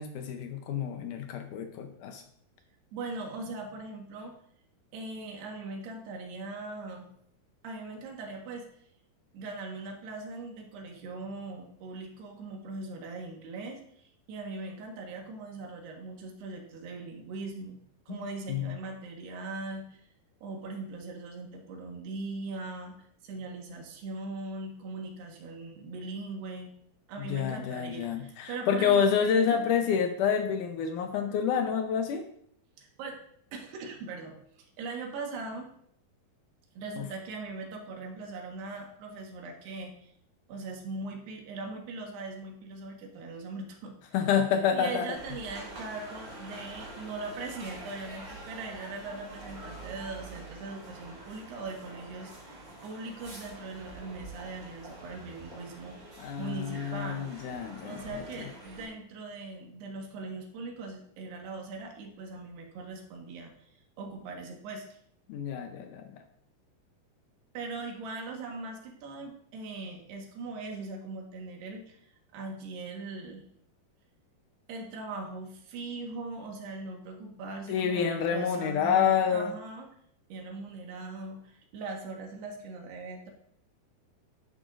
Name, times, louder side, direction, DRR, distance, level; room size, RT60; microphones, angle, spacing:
voice 1, 0.0-2.2 18.1-18.8 27.2-32.2 37.0-37.1 44.1-45.1 56.2-58.5 65.3-66.2 77.7-79.5, left 7 dB, 80° left, 5 dB, 1.8 m, -28 dB
voice 2, 2.9-4.3 4.9-7.1 7.6-8.7 9.3-17.8 18.1-20.0 20.4-23.0 23.2-26.7 27.1-29.7 32.8-33.2 33.5-35.7 36.8-40.1 40.5-44.0 44.7-52.6 52.8-56.0 56.4-57.2 57.8-63.7 64.0-65.0 67.6-73.5 74.7-79.9 80.3-83.3, right 3 dB, 85° right, 1 dB, 3.6 m, -40 dB
sound 1, 45.1-58.8, right 2 dB, 20° right, 3.6 m, -46 dB
11.0 x 10.0 x 2.6 m, 0.68 s
omnidirectional pair, 4.6 m